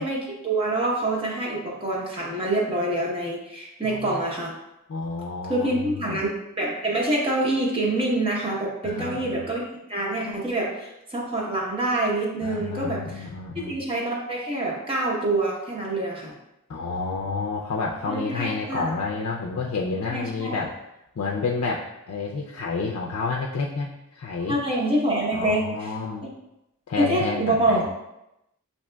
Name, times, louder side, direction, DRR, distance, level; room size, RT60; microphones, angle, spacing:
voice 1, 0.0-4.5 5.5-9.6 9.9-13.3 13.5-16.3 18.1-18.8 20.1-20.5 24.5-25.9 26.9-27.9, right 1 dB, 25° right, -3 dB, 0.8 m, -26 dB
voice 2, 3.8-4.2 4.9-6.2 8.8-9.4 12.4-13.7 16.7-20.8 21.2-24.6 25.3-26.3 26.9-27.9, left 4 dB, 70° left, -2 dB, 0.4 m, -30 dB
6.9 x 2.8 x 2.2 m, 0.88 s
head